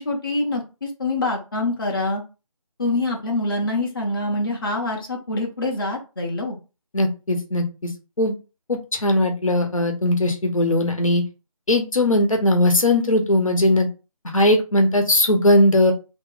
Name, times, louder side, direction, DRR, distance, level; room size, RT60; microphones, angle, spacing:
voice 1, 0.0-2.2 2.8-6.6, left 2 dB, 40° left, 0 dB, 0.8 m, -25 dB
voice 2, 6.9-7.9 8.2-8.3 8.7-11.2 11.7-13.9 14.2-15.9, left 1 dB, 65° left, 3 dB, 1.0 m, -19 dB
2.9 x 2.3 x 3.8 m, 0.30 s
figure-of-eight pair, 160°, 18 cm